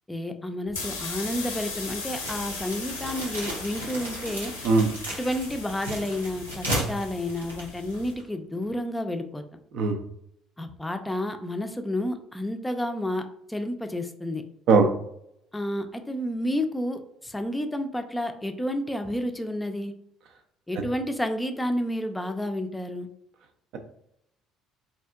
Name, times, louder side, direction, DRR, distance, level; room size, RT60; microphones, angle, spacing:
voice 1, 0.1-4.5 5.2-9.4 10.6-13.2 13.5-14.4 15.5-19.9 20.7-23.1, left 1 dB, 10° left, 6 dB, 0.4 m, -30 dB
sound 1, 0.7-8.1, left 3 dB, 85° left, 0.6 m, -38 dB
sound 2, 2.2-8.3, equal, 90° right, 0.8 m, -35 dB
voice 2, 4.6-5.0 6.7-6.8 9.7-10.0 14.7-14.9, right 4 dB, 60° right, 6 dB, 0.4 m, -20 dB
3.4 x 2.4 x 2.3 m, 0.73 s
figure-of-eight pair, 55°, 0 cm